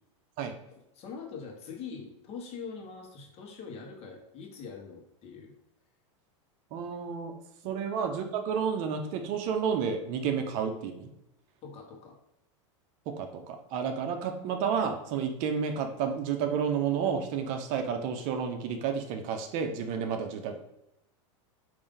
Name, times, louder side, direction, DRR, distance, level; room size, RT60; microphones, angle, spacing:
voice 1, 0.9-5.5 7.6-7.8 11.6-12.2, left 5 dB, 40° left, 1 dB, 1.1 m, -43 dB
voice 2, 6.7-7.3 7.6-11.1 13.1-20.6, right 7 dB, 50° right, 6 dB, 0.6 m, -31 dB
5.0 x 2.7 x 3.6 m, 0.86 s
supercardioid pair, 120°, 16 cm